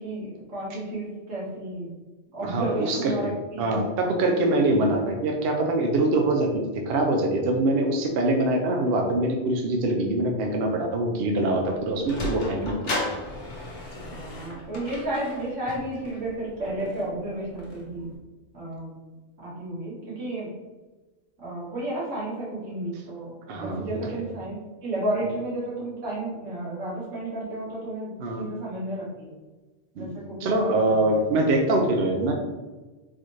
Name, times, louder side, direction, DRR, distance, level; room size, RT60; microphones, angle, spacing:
voice 1, 0.0-1.9 2.3-4.1 14.1-18.1 18.5-19.0 19.4-20.5 21.4-29.4 29.9-31.3, right 1 dB, 90° right, -7 dB, 1.9 m, -32 dB
voice 2, 2.4-3.3 3.6-13.0 23.5-24.2 28.2-28.4 30.0-32.3, right 2 dB, 60° right, 2 dB, 0.7 m, -24 dB
Sliding door, 11.6-18.2, left 1 dB, 75° left, 1.1 m, -36 dB
4.1 x 2.7 x 3.0 m, 1.2 s
omnidirectional pair, 1.2 m